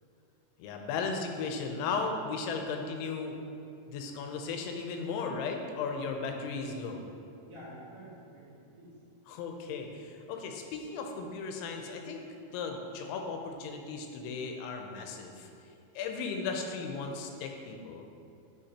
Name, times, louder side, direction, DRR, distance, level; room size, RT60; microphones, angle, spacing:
voice 1, 0.6-3.4 3.9-7.0 9.3-12.2 12.5-15.5 16.0-18.1, left 4 dB, 80° left, 3 dB, 2.9 m, -36 dB
voice 2, 6.0-6.4 7.4-9.0, right 1 dB, 65° right, -10 dB, 2.1 m, -50 dB
11.5 x 5.3 x 2.9 m, 2.6 s
omnidirectional pair, 5.5 m